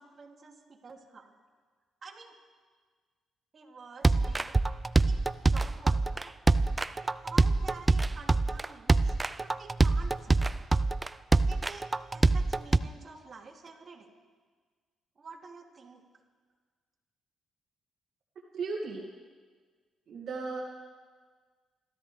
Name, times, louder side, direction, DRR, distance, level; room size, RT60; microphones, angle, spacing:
voice 1, 0.0-1.3 2.0-2.4 3.5-4.6 5.0-5.2 5.5-6.3 7.2-9.1 9.4-10.4 11.5-11.9 12.1-14.1 15.2-16.0, right 4 dB, 40° right, -1 dB, 2.6 m, -48 dB
sound 1, 4.0-12.8, right 3 dB, 20° right, 0.4 m, -25 dB
voice 2, 18.5-19.0 20.1-20.6, right 4 dB, 65° right, -2 dB, 2.1 m, -36 dB
29.5 x 13.5 x 3.3 m, 1.5 s
cardioid pair, 90°, 0 cm